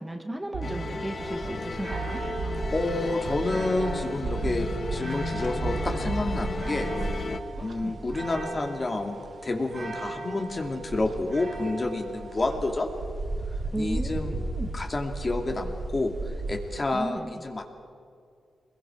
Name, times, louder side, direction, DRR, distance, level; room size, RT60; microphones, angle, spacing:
voice 1, 0.0-2.2 7.6-8.0 13.7-14.7 16.9-17.4, right 1 dB, 15° right, 5 dB, 1.7 m, -35 dB
sound 1, 0.5-1.5 1.9-3.4 4.2-5.2 5.6-7.1 7.5-7.8, right 5 dB, 85° right, 1.2 m, -37 dB
sound 2, 0.6-7.4, left 3 dB, 55° left, 1.7 m, -35 dB
sound 3, 1.2-17.0, right 2 dB, 50° right, 3.3 m, -35 dB
voice 2, 2.4-6.9 7.6-9.1 9.4-12.9 13.8-14.4 14.7-17.6, left 2 dB, 35° left, 4 dB, 2.7 m, -29 dB
25.0 x 21.5 x 6.2 m, 2.3 s
cardioid pair, 80°, 0 cm